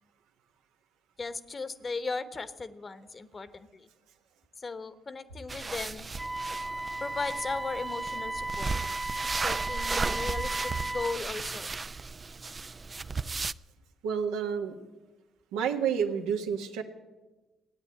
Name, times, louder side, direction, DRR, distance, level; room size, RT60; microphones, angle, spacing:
voice 1, 1.2-3.9 4.6-6.1 7.0-8.8 9.4-11.7, left 4 dB, 40° left, 12 dB, 1.1 m, -37 dB
sound 1, 5.5-13.5, right 4 dB, 35° right, 0.4 m, -35 dB
Wind instrument woodwind instrument, 6.2-11.2, right 2 dB, 5° right, 0.9 m, -35 dB
voice 2, 14.0-14.8 15.5-16.8, right 7 dB, 85° right, 3 dB, 1.4 m, -29 dB
16.0 x 9.6 x 8.8 m, 1.1 s
supercardioid pair, 55°, 0 cm